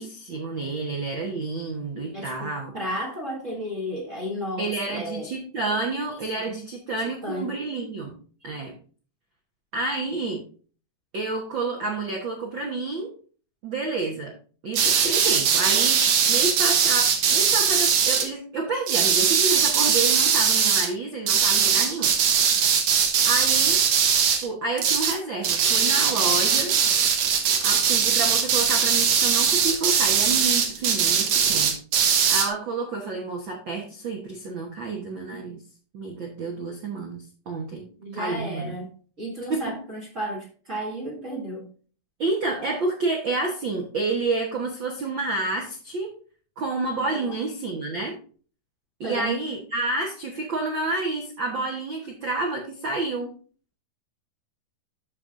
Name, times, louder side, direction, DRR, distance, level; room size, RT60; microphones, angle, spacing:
voice 1, 0.0-2.7 4.6-8.2 8.4-8.7 9.7-10.4 11.1-13.1 13.6-14.3 14.6-22.1 23.2-23.8 24.4-26.7 27.6-31.7 32.3-35.6 35.9-37.8 38.1-38.7 39.5-39.8 42.2-46.1 46.6-48.1 49.0-53.3, right 3 dB, 90° right, 0 dB, 1.0 m, -29 dB
voice 2, 2.1-5.3 7.0-7.5 38.0-38.9 39.2-41.7 47.1-47.3 49.0-49.3, equal, 35° right, -1 dB, 1.2 m, -33 dB
sound 1, 14.7-18.3 18.9-20.9 21.3-24.5 24.8-25.2 25.4-32.5, right 7 dB, 60° right, 1.9 m, -21 dB
13.5 x 5.3 x 2.6 m, 0.40 s
omnidirectional pair, 4.1 m